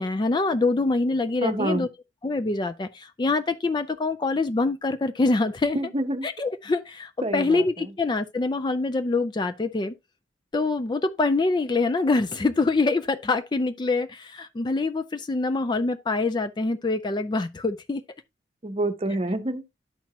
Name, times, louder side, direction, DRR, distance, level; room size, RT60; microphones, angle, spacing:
voice 1, 0.0-1.9 2.2-5.8 6.2-9.9 10.5-18.0, left 3 dB, 25° left, 0.4 m, -25 dB
voice 2, 1.4-1.9 5.7-6.3 7.2-7.9 18.6-19.6, right 1 dB, 30° right, 0.8 m, -27 dB
11.5 x 4.4 x 2.8 m
head